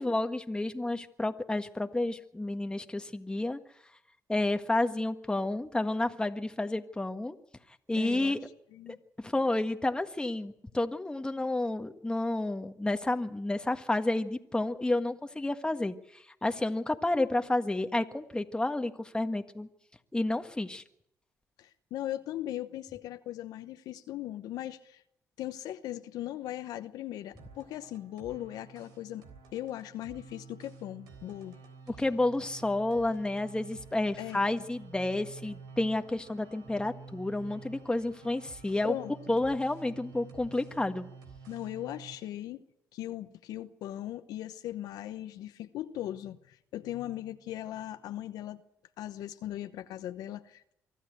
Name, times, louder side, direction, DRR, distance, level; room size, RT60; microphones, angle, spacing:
voice 1, 0.0-3.6 4.3-7.3 7.9-8.4 9.2-19.7 20.1-20.8 31.9-38.9 39.3-41.1, left 2 dB, 15° left, 1.6 m, -30 dB
voice 2, 8.0-8.4 8.7-9.0 21.6-25.0 25.4-29.3 29.5-31.6 34.2-34.4 38.8-39.3 41.5-42.6 42.9-48.6 49.0-50.7, left 13 dB, 75° left, 1.0 m, -39 dB
sound 1, 27.4-42.2, right 5 dB, 85° right, 3.6 m, -50 dB
24.5 x 13.5 x 8.0 m
supercardioid pair, 65°, 7 cm